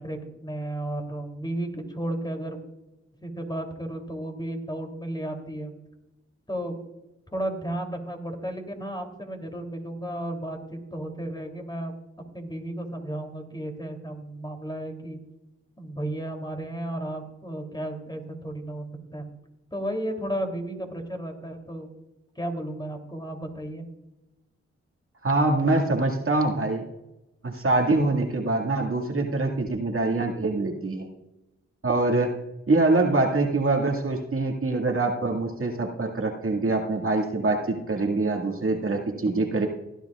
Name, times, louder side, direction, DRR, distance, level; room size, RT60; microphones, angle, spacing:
voice 1, 0.0-2.6 3.2-5.7 6.5-6.8 7.3-12.0 12.3-15.2 15.8-18.9 19.1-19.3 19.7-21.9 22.3-23.8, right 1 dB, 15° left, 3 dB, 3.0 m, -33 dB
voice 2, 25.2-26.8 27.4-31.1 31.8-32.4 32.7-39.7, right 2 dB, 50° right, 1 dB, 2.0 m, -24 dB
16.5 x 10.5 x 2.4 m, 0.97 s
supercardioid pair, 45°, 29 cm